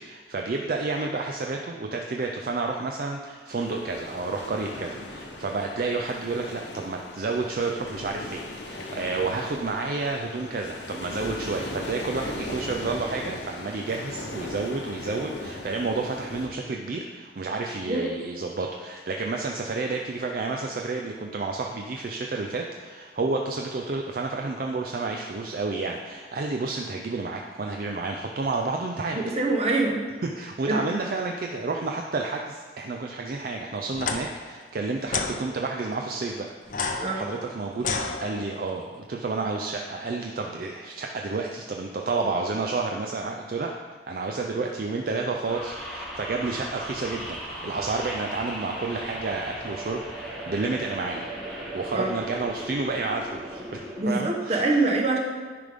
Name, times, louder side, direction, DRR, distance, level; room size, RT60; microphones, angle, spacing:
voice 1, 0.0-29.2 30.2-37.9 38.2-43.7 44.1-51.3 51.7-53.8 54.1-54.9, right 3 dB, 50° right, 2 dB, 0.4 m, -30 dB
sound 1, 3.6-16.5, left 2 dB, 75° left, 0.9 m, -38 dB
voice 2, 29.1-30.0 30.7-30.8 37.0-37.2 51.9-52.1 54.0-55.2, right 2 dB, 35° right, 0 dB, 0.9 m, -24 dB
sound 2, 33.9-34.2 35.1-35.3 36.7-38.7, left 4 dB, 45° left, 0.6 m, -30 dB
sound 3, 45.5-54.0, right 1 dB, ahead, 2.3 m, -37 dB
10.0 x 5.1 x 3.5 m, 1.5 s
head